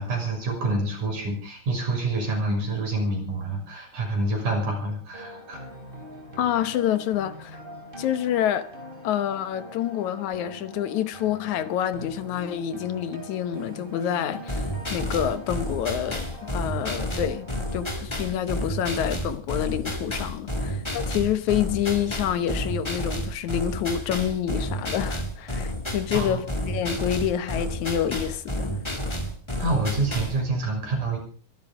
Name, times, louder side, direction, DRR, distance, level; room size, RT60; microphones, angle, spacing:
voice 1, 0.0-5.6 20.5-20.6 26.1-26.4 29.6-31.2, right 2 dB, 85° right, 7.8 m, -27 dB
sound 1, 5.1-17.9, equal, 15° right, 4.5 m, -43 dB
voice 2, 6.4-7.6 8.0-8.7 9.0-28.8, left 10 dB, 75° left, 2.4 m, -27 dB
sound 2, 14.5-30.4, equal, 10° left, 1.8 m, -31 dB
23.5 x 12.0 x 5.0 m
omnidirectional pair, 3.5 m